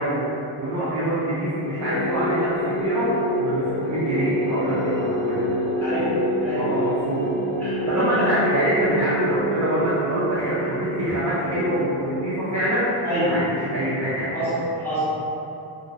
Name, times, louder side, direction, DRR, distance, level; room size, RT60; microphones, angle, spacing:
voice 1, 0.0-5.5 6.5-7.2 7.9-12.9 13.3-14.3, right 1 dB, 40° right, -10 dB, 0.5 m, -25 dB
sound 1, 1.8-14.6, equal, 60° left, 0.8 m, -27 dB
voice 2, 5.8-6.7 7.6-8.3 13.0-13.5 14.3-15.2, equal, 5° left, -15 dB, 1.1 m, -26 dB
2.9 x 2.9 x 2.5 m, 2.8 s
wide cardioid pair, 175°, 48 cm